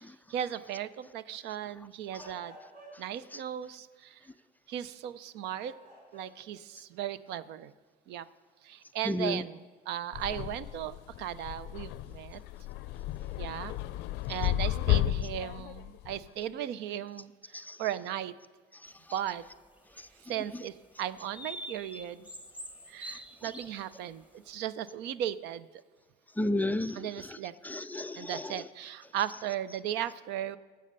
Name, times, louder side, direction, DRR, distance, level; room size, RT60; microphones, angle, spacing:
voice 1, 0.0-2.6 3.0-4.2 4.7-5.7 6.1-7.7 8.1-8.3 8.6-12.4 13.4-13.7 14.3-18.3 19.1-19.4 20.3-22.3 22.9-25.7 26.9-27.5 28.2-30.6, right 11 dB, 90° right, 16 dB, 0.5 m, -37 dB
sound 1, 2.1-3.3 4.8-5.0 5.5-6.6 7.0-7.1 9.5-9.6 11.2-11.5, right 1 dB, 60° right, 4.8 m, -52 dB
voice 2, 9.0-9.5 17.5-17.8 18.8-18.9 26.4-27.4 27.6-28.5, left 1 dB, 10° left, 12 dB, 0.3 m, -32 dB
sound 2, 10.1-16.3, left 14 dB, 90° left, 0.5 m, -33 dB
sound 3, 19.1-20.1 20.7-20.8 21.3-24.2, equal, 10° right, 1.2 m, -45 dB
17.5 x 7.7 x 5.4 m, 1.4 s
cardioid pair, 110°, 17 cm